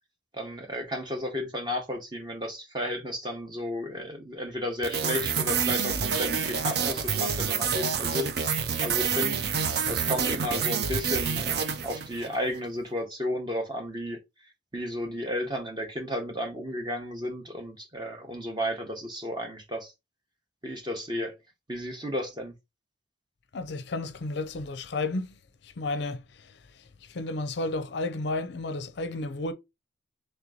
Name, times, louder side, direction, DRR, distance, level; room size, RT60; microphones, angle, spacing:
voice 1, 0.3-14.2 14.7-19.9 20.6-21.4 21.7-22.5, left 1 dB, 20° right, 0.9 m, -33 dB
sound 1, 4.8-12.4, right 6 dB, 55° right, 0.5 m, -28 dB
voice 2, 23.5-25.4 25.6-29.5, left 2 dB, 60° left, 0.5 m, -33 dB
3.3 x 3.0 x 3.6 m
head